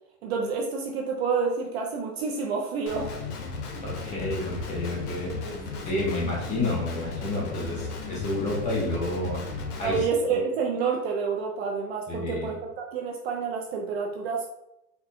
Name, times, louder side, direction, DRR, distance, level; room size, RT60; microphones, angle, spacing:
voice 1, 0.2-3.1 5.5-6.1 9.8-14.5, right 5 dB, 45° right, 1 dB, 0.5 m, -29 dB
Guitar, 2.9-10.0, left 4 dB, 70° left, 0.9 m, -35 dB
voice 2, 3.8-5.6 5.9-10.0 12.1-12.5, left 2 dB, 15° left, -4 dB, 0.7 m, -30 dB
4.2 x 2.2 x 2.6 m, 0.85 s
hypercardioid pair, 130°, 48 cm